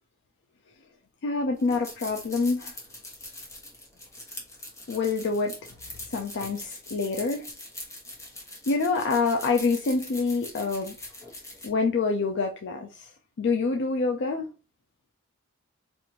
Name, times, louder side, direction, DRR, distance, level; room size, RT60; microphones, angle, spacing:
voice 1, 1.2-2.7 4.9-5.5 6.1-7.5 8.7-10.9 11.6-13.1 13.4-14.5, left 4 dB, 55° left, 0.4 m, -26 dB
sound 1, 1.6-11.7, left 1 dB, 15° left, 1.0 m, -42 dB
4.3 x 2.5 x 2.8 m
head